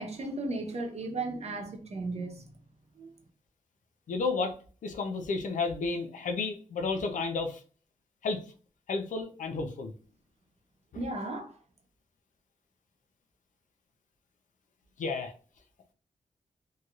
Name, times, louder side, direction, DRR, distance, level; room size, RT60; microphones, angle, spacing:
voice 1, 0.0-2.4 3.0-3.1 10.9-11.6, right 2 dB, 55° right, 0.8 m, -35 dB
voice 2, 4.1-4.5 4.8-7.6 8.2-8.4 8.9-9.9 10.9-11.0 15.0-15.3, left 4 dB, 85° left, 0.6 m, -32 dB
3.1 x 2.7 x 2.4 m
cardioid pair, 80°, 13 cm